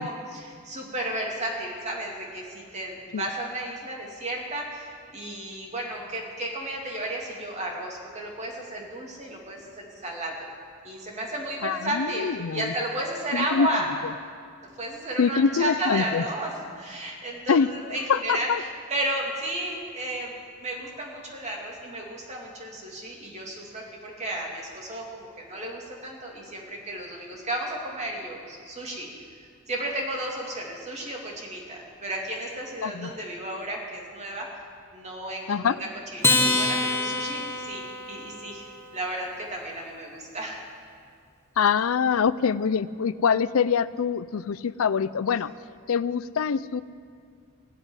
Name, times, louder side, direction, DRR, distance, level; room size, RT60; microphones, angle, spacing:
voice 1, 0.0-10.3 10.8-13.9 14.8-29.1 29.4-34.5 34.9-40.6, right 1 dB, 35° right, -1 dB, 2.7 m, -33 dB
voice 2, 11.6-12.7 13.3-13.7 14.0-14.1 15.2-16.2 17.5-18.6 32.8-33.1 35.5-35.8 41.6-45.5 45.9-46.8, left 6 dB, 70° left, 16 dB, 0.5 m, -24 dB
Acoustic guitar, 36.2-38.9, left 2 dB, 10° left, 1.3 m, -26 dB
16.5 x 8.1 x 9.7 m, 2.2 s
head